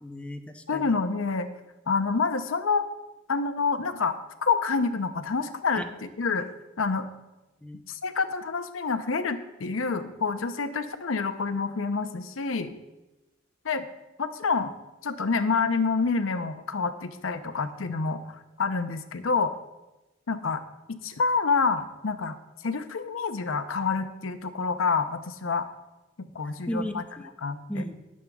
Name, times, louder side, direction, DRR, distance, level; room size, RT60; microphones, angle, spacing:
voice 1, 0.0-0.9 5.8-5.9 7.6-7.8 26.7-27.3 27.7-27.9, equal, 5° left, 5 dB, 0.6 m, -34 dB
voice 2, 0.7-1.5 1.9-2.9 3.3-4.2 4.4-6.5 6.8-7.1 7.9-12.7 13.6-13.9 14.2-14.7 15.0-19.5 20.3-22.4 22.6-25.7 26.3-27.0 27.4-27.9, left 4 dB, 80° left, 9 dB, 0.7 m, -27 dB
20.0 x 7.4 x 2.4 m, 1.0 s
head